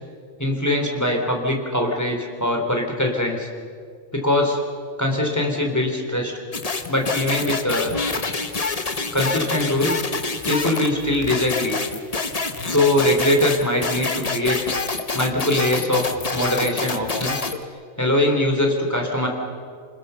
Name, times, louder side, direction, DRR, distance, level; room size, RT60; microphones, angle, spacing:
voice 1, 0.4-3.5 4.1-4.6 5.0-6.3 6.9-8.0 9.1-10.0 10.5-11.8 12.6-14.6 15.1-16.0 16.3-17.5 18.0-19.3, left 1 dB, 10° left, 1 dB, 3.3 m, -22 dB
sound 1, 6.5-17.6, left 3 dB, 30° left, 1.1 m, -27 dB
29.0 x 20.5 x 6.9 m, 2.2 s
omnidirectional pair, 1.4 m